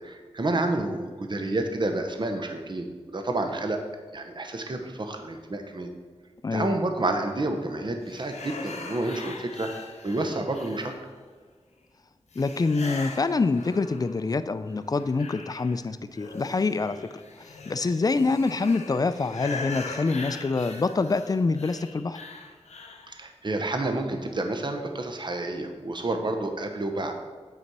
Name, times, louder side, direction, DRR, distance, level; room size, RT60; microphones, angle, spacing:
voice 1, 0.0-2.9 3.1-3.8 4.1-5.9 6.5-9.7 10.0-10.9 23.1-27.2, right 2 dB, 45° right, 5 dB, 0.9 m, -29 dB
sound 1, 8.1-11.2 12.3-14.3 14.7-23.1, left 3 dB, 90° left, 0.7 m, -41 dB
voice 2, 12.4-17.0 17.4-22.2, left 3 dB, 35° left, 12 dB, 0.4 m, -26 dB
9.2 x 4.1 x 4.7 m, 1.5 s
wide cardioid pair, 65°, 11 cm